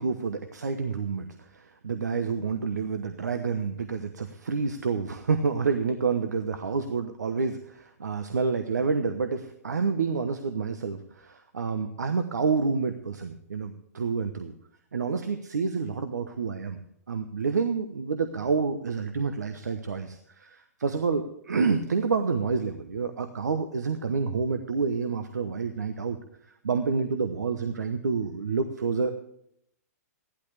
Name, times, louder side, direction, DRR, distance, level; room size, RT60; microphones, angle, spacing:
voice 1, 0.0-14.5 14.9-16.8 17.1-26.2 26.6-29.1, right 5 dB, 85° right, 8 dB, 1.0 m, -28 dB
15.5 x 11.5 x 3.3 m, 0.73 s
hypercardioid pair, 125°, 9 cm